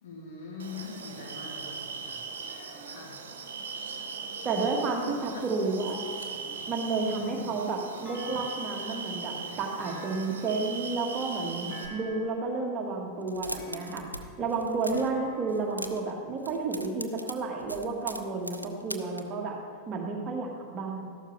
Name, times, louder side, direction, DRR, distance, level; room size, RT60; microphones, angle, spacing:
voice 1, 0.0-2.2 2.8-3.2 5.3-5.4 7.0-7.4, left 5 dB, 55° left, -2 dB, 2.5 m, -42 dB
sound 1, 0.6-11.9, right 5 dB, 65° right, 1.2 m, -39 dB
voice 2, 4.4-6.0 6.7-14.0 14.4-19.6 19.9-21.1, right 3 dB, 30° right, 0 dB, 1.7 m, -31 dB
Thump thud, 8.0-9.0 9.8-10.7 11.7-12.5 13.6-14.3 14.9-15.9, equal, 25° left, 2.5 m, -47 dB
sound 2, 13.2-14.2 14.5-15.1 15.5-16.1 16.4-19.2, right 1 dB, 85° right, 0.6 m, -39 dB
13.5 x 12.0 x 3.3 m, 2.3 s
figure-of-eight pair, 90°, 0 cm